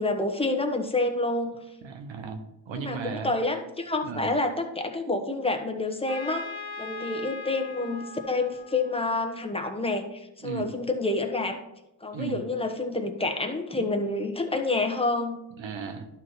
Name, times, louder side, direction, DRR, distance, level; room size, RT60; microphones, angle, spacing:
voice 1, 0.0-1.6 2.7-6.5 6.8-11.6 12.0-15.4, left 2 dB, 15° left, 4 dB, 1.1 m, -28 dB
voice 2, 1.8-2.4 2.7-3.3 4.0-4.3 10.4-10.7 12.1-12.4 15.6-16.1, right 6 dB, 85° right, 6 dB, 1.2 m, -35 dB
Trumpet, 6.1-9.8, left 4 dB, 55° left, 1.3 m, -41 dB
11.5 x 4.4 x 4.1 m, 0.91 s
cardioid pair, 90°, 44 cm